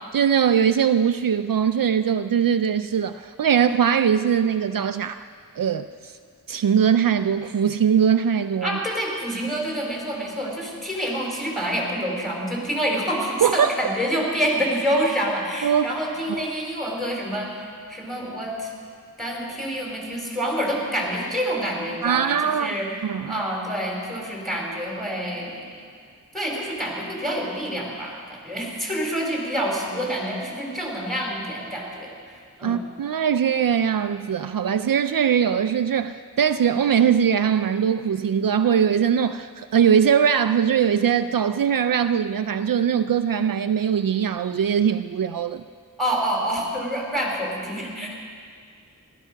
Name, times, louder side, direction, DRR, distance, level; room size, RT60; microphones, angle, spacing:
voice 1, 0.1-5.2 5.6-6.2 6.5-8.8 13.4-13.7 15.6-15.9 16.3-16.4 22.0-22.7 23.0-23.4 32.6-45.6, right 8 dB, 70° right, 10 dB, 0.5 m, -21 dB
voice 2, 8.6-18.7 19.2-22.9 23.2-25.6 26.3-32.8 46.0-48.1, equal, ahead, -2 dB, 4.7 m, -27 dB
16.0 x 13.0 x 5.8 m, 2.1 s
wide cardioid pair, 50°, 35 cm